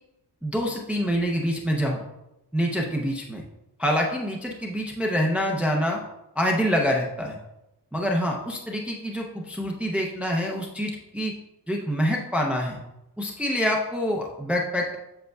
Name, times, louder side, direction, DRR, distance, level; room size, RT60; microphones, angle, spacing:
voice 1, 0.4-2.0 2.5-3.4 3.8-6.0 6.4-7.4 7.9-11.3 11.7-12.8 13.2-15.0, equal, 5° right, -1 dB, 0.5 m, -26 dB
7.9 x 6.4 x 2.3 m, 0.93 s
wide cardioid pair, 155°, 41 cm